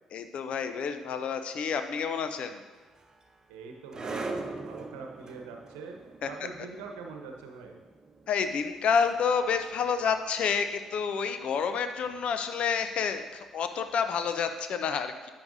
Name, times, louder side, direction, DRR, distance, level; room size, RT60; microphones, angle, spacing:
voice 1, 0.1-2.6 6.2-6.3 8.3-15.3, left 6 dB, 55° left, 9 dB, 0.7 m, -29 dB
sound 1, 2.7-13.9, right 3 dB, 30° right, 0.9 m, -44 dB
voice 2, 3.5-6.0 6.2-7.8, right 4 dB, 75° right, 3 dB, 1.0 m, -43 dB
10.5 x 7.6 x 2.7 m, 1.3 s
hypercardioid pair, 45°, 2 cm